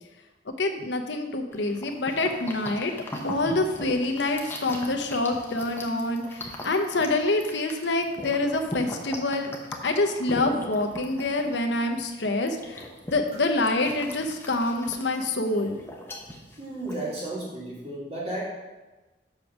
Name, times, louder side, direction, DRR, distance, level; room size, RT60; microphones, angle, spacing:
voice 1, 0.6-2.9 3.2-9.5 9.8-15.8, left 2 dB, 75° left, 5 dB, 0.9 m, -26 dB
sound 1, 1.5-17.3, left 1 dB, 15° left, 1.0 m, -40 dB
voice 2, 16.6-18.4, right 1 dB, 35° right, -6 dB, 2.9 m, -33 dB
6.7 x 5.2 x 6.2 m, 1.1 s
head